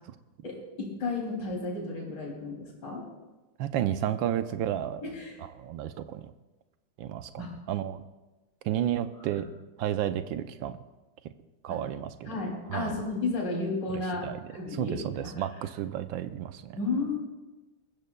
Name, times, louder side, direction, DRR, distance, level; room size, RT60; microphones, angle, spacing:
voice 1, 0.4-3.0 5.0-5.4 7.4-7.5 11.7-11.8 12.3-15.4 16.8-17.2, left 3 dB, 65° left, -2 dB, 3.7 m, -33 dB
voice 2, 3.6-5.0 5.6-6.3 7.0-8.0 8.6-9.4 9.8-10.8 11.6-12.4 12.7-12.9 14.2-14.4 14.7-16.8, right 11 dB, 90° right, 10 dB, 1.4 m, -32 dB
21.0 x 15.0 x 2.3 m, 1.1 s
omnidirectional pair, 2.1 m